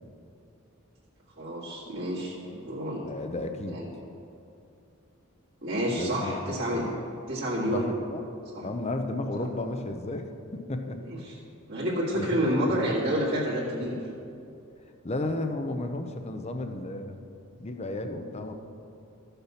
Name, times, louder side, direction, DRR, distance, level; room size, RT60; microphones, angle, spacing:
voice 1, 1.4-3.0 3.7-3.9 5.6-6.8 7.3-7.9 8.5-8.7 11.0-11.3 11.7-14.0, equal, 55° right, -9 dB, 2.0 m, -29 dB
voice 2, 3.0-3.8 5.9-7.1 7.7-8.2 8.6-11.0 12.1-12.9 13.8-13.9 15.0-17.2 17.6-18.5, left 2 dB, 30° left, 6 dB, 0.7 m, -33 dB
14.0 x 6.8 x 5.7 m, 2.7 s
head